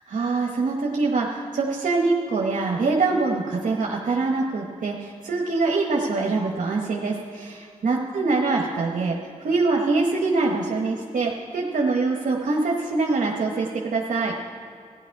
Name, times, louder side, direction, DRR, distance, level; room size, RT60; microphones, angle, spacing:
voice 1, 0.1-14.3, right 3 dB, 80° right, -2 dB, 1.2 m, -24 dB
14.0 x 11.0 x 4.7 m, 2.3 s
cardioid pair, 50°, 14 cm